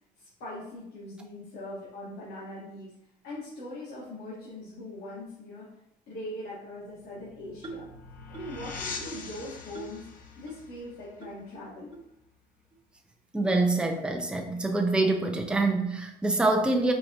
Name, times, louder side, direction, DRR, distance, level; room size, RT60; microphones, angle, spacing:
voice 1, 0.2-2.9 3.2-5.7 6.1-7.9 8.3-10.1 10.4-12.0, left 1 dB, 75° left, -8 dB, 1.4 m, -41 dB
sound 1, 6.8-12.2, left 4 dB, 55° left, 0.6 m, -43 dB
sound 2, 7.6-7.9 8.3-8.6 9.1-9.3 9.7-10.0 10.5-10.6 11.2-11.3 11.9-12.0 12.7-12.8 13.4-13.6, right 5 dB, 30° right, 0.8 m, -43 dB
voice 2, 13.3-16.9, right 2 dB, 5° right, 2 dB, 0.5 m, -25 dB
4.5 x 3.6 x 2.7 m, 0.83 s
cardioid pair, 110°, 17 cm